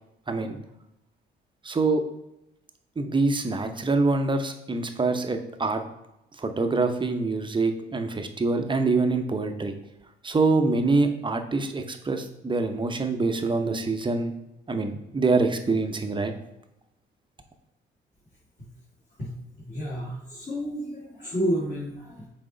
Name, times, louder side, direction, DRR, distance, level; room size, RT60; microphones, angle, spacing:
voice 1, 0.3-0.6 1.6-2.0 3.0-5.8 6.4-9.7 10.2-14.4 14.7-16.3, right 3 dB, 25° right, 6 dB, 0.7 m, -25 dB
voice 2, 19.6-22.3, equal, 40° left, -6 dB, 2.1 m, -30 dB
6.0 x 4.2 x 3.9 m, 0.89 s
cardioid pair, 90°, 20 cm